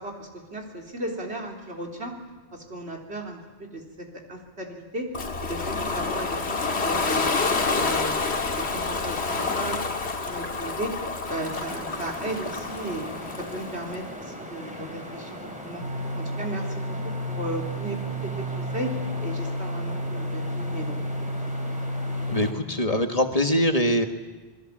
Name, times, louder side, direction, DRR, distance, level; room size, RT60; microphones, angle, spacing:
voice 1, 0.0-2.1 2.5-5.1 5.4-7.3 7.7-10.9 11.3-13.1 13.4-15.8 16.2-18.9 19.2-21.0, right 1 dB, 85° right, 0 dB, 3.9 m, -35 dB
Ocean, 5.1-14.0, left 4 dB, 85° left, 1.9 m, -28 dB
sound 1, 11.3-22.5, equal, 5° right, 4.1 m, -39 dB
sound 2, 15.8-22.5, equal, 55° right, 1.3 m, -31 dB
voice 2, 22.3-24.1, equal, 35° left, 5 dB, 1.7 m, -23 dB
27.5 x 21.0 x 7.4 m, 1.2 s
omnidirectional pair, 1.1 m